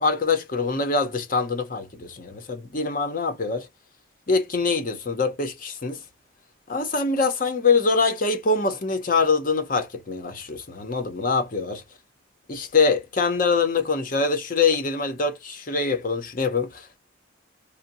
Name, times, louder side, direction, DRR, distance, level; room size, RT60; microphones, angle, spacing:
voice 1, 0.0-3.7 4.3-6.0 6.7-11.8 12.5-17.0, left 4 dB, 40° left, 0.7 m, -24 dB
2.6 x 2.1 x 4.0 m
head